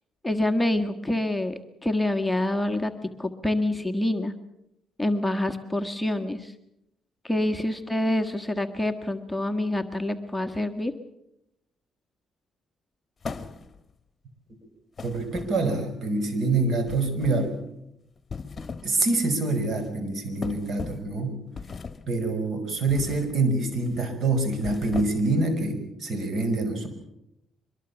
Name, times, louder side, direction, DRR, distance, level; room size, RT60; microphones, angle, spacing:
voice 1, 0.2-1.5 1.8-2.9 3.2-4.3 5.0-6.5 7.2-10.9, left 1 dB, 5° left, 4 dB, 1.6 m, -26 dB
sound 1, 13.2-13.9 15.0-15.9 16.9-17.5 18.2-19.0 19.3-19.6 20.4-21.1 21.6-22.1 22.9-23.3 23.7-24.0 24.5-25.4, left 5 dB, 35° left, 1.6 m, -38 dB
voice 2, 15.0-17.5 18.8-21.4 22.1-26.9, right 2 dB, 60° right, 9 dB, 5.5 m, -26 dB
24.0 x 22.0 x 7.2 m, 0.82 s
cardioid pair, 90°, 0 cm